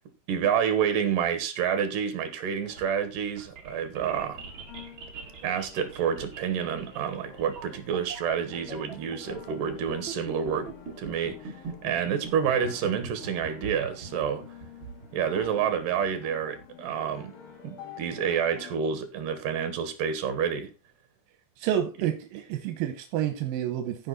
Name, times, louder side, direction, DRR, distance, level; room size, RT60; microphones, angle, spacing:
voice 1, 0.3-4.4 5.4-10.7 11.0-11.5 11.8-14.4 15.1-17.3 17.6-20.7, right 7 dB, 70° right, 3.0 m, -28 dB
sound 1, 2.5-16.6, right 5 dB, 40° right, 2.2 m, -42 dB
sound 2, 2.6-2.8 4.4-18.7, left 8 dB, 80° left, 3.5 m, -49 dB
voice 2, 21.6-24.1, right 10 dB, 85° right, 2.6 m, -29 dB
15.0 x 5.1 x 4.0 m
omnidirectional pair, 4.1 m